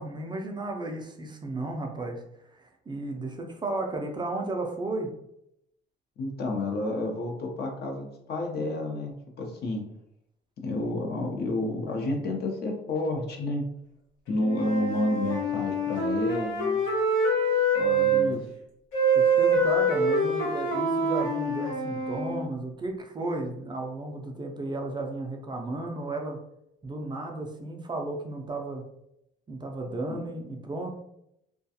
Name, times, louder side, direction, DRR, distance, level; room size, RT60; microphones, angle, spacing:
voice 1, 0.0-5.1 17.8-18.4 19.1-26.4 26.8-28.9 29.5-30.9, right 2 dB, 25° right, 2 dB, 0.4 m, -34 dB
voice 2, 6.2-9.8 10.6-13.6 14.3-16.8 17.7-18.4 30.1-30.2, left 2 dB, 60° left, 2 dB, 0.7 m, -30 dB
Wind instrument woodwind instrument, 14.3-18.2 18.9-22.4, right 1 dB, 90° left, 1.1 m, -25 dB
2.3 x 2.2 x 2.7 m, 0.78 s
cardioid pair, 100°, 19 cm